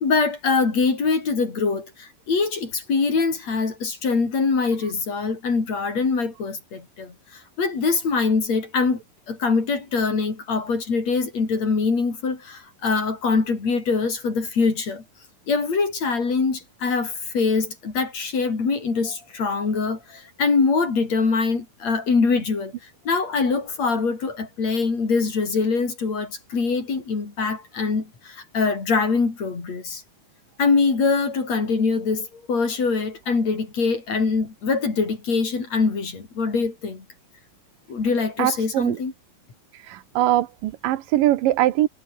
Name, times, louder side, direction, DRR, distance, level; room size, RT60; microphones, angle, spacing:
voice 1, 0.0-9.0 9.3-15.0 15.5-22.7 23.1-30.0 30.6-37.0 37.9-39.1, left 4 dB, 50° left, 5.8 m, -23 dB
voice 2, 38.4-39.0 39.9-41.9, right 14 dB, 85° right, 2.7 m, -21 dB
omnidirectional pair, 3.9 m